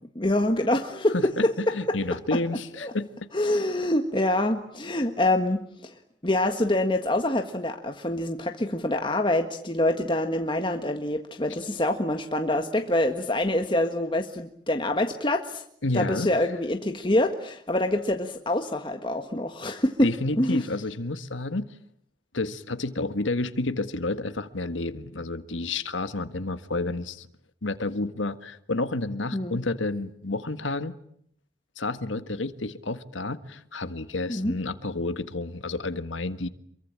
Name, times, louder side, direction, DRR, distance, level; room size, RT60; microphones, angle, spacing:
voice 1, 0.1-2.0 2.3-2.4 2.8-2.9 3.3-5.9 6.2-15.6 15.9-20.1 20.4-20.6 29.3-29.6 34.3-34.5, left 1 dB, 25° left, 1.6 m, -25 dB
voice 2, 1.1-3.1 15.8-16.3 20.0-21.7 22.3-27.3 27.6-31.0 31.8-36.5, left 2 dB, 90° left, 1.7 m, -30 dB
27.5 x 23.5 x 8.8 m
head